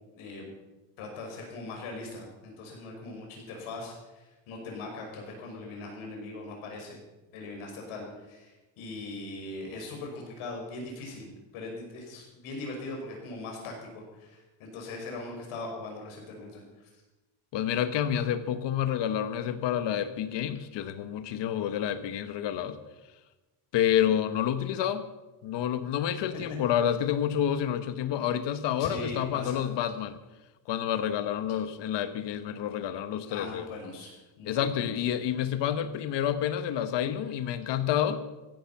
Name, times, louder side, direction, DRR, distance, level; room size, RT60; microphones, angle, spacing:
voice 1, 0.1-0.5 1.0-7.0 7.3-16.6 28.8-29.6 33.3-34.1 34.4-35.0, left 2 dB, 75° left, 1 dB, 5.7 m, -40 dB
voice 2, 17.5-22.8 23.7-25.0 25.4-30.2 30.7-33.7 34.4-38.2, left 10 dB, 55° left, 11 dB, 1.2 m, -29 dB
16.0 x 11.5 x 5.9 m, 1.1 s
cardioid pair, 170°, 50 cm